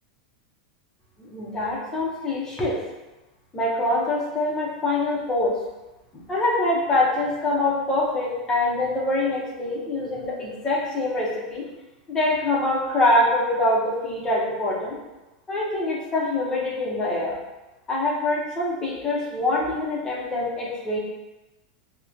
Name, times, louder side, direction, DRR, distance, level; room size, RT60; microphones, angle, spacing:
voice 1, 1.2-2.8 3.5-5.5 6.3-11.7 12.1-15.0 15.5-17.4 17.9-21.0, left 2 dB, 15° left, -5 dB, 0.7 m, -24 dB
3.0 x 2.1 x 3.7 m, 1.1 s
supercardioid pair, 160°, 4 cm